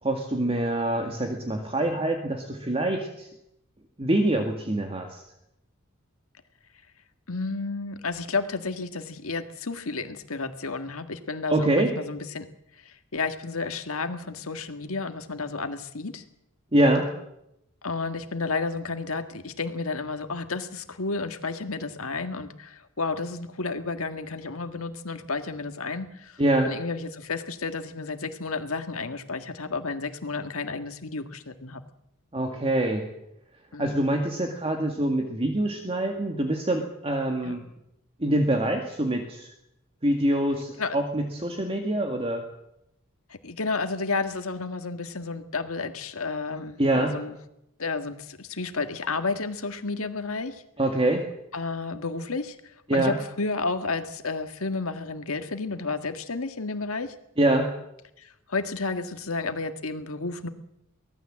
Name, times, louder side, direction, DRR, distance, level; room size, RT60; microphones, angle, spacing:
voice 1, 0.0-3.3 4.0-5.2 11.5-11.9 16.7-17.1 26.4-26.7 32.3-33.1 33.8-37.6 38.2-39.5 40.0-42.4 46.8-47.1 50.8-51.2 52.9-53.2 57.4-57.7, right 1 dB, 25° right, 3 dB, 2.1 m, -25 dB
voice 2, 7.3-12.5 12.7-16.2 17.8-31.8 33.7-34.2 37.4-37.5 40.8-41.0 43.3-47.4 47.8-50.6 51.5-57.1 58.2-60.5, left 3 dB, 75° left, 8 dB, 1.8 m, -32 dB
23.5 x 17.5 x 7.7 m, 0.82 s
head